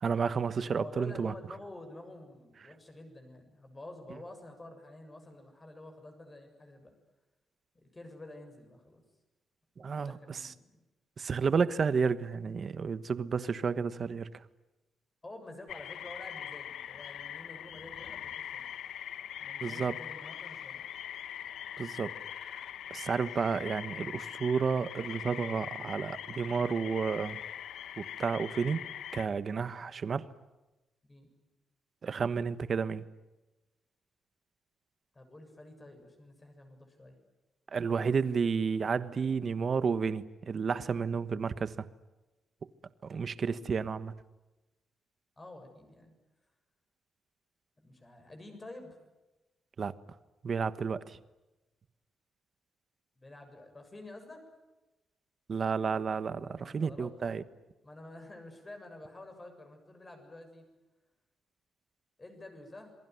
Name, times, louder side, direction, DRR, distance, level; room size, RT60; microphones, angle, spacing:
voice 1, 0.0-1.3 9.8-10.4 11.2-14.3 19.6-19.9 21.8-22.1 22.4-22.6 22.9-27.4 28.0-28.8 29.1-30.2 32.0-33.0 37.7-41.8 43.0-44.1 49.8-49.9 50.4-51.2 55.5-57.4, right 5 dB, 40° right, 1.3 m, -31 dB
voice 2, 0.6-6.9 7.7-9.0 9.8-10.7 15.2-18.7 19.4-20.9 31.0-31.3 35.1-37.2 45.4-46.1 47.8-49.0 53.2-54.4 56.4-57.5 57.8-60.7 62.2-62.9, left 2 dB, 20° left, 7.1 m, -49 dB
sound 1, 15.7-29.3, left 10 dB, 80° left, 1.2 m, -42 dB
27.5 x 22.5 x 9.4 m
cardioid pair, 150°, 0 cm